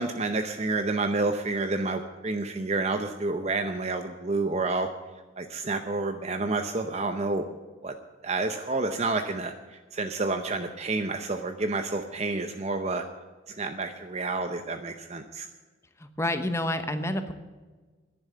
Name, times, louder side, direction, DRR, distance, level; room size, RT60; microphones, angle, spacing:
voice 1, 0.0-4.9 5.4-7.4 7.8-7.9 8.2-13.0 13.5-15.5, right 3 dB, 35° right, 7 dB, 0.7 m, -29 dB
voice 2, 16.0-17.3, left 1 dB, 15° left, 9 dB, 1.0 m, -29 dB
11.0 x 10.5 x 8.3 m, 1.4 s
head